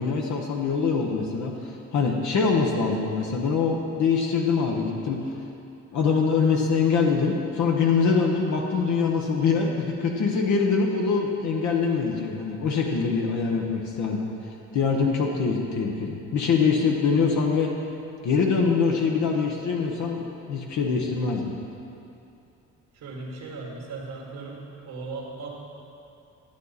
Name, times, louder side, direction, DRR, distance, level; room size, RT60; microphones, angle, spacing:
voice 1, 0.0-1.5 1.9-5.2 5.9-14.3 14.7-17.7 18.2-21.5, left 5 dB, 70° left, 0 dB, 1.1 m, -24 dB
voice 2, 22.9-24.6 24.9-25.5, right 3 dB, 85° right, -5 dB, 1.7 m, -37 dB
11.5 x 8.2 x 4.1 m, 2.6 s
cardioid pair, 90°, 30 cm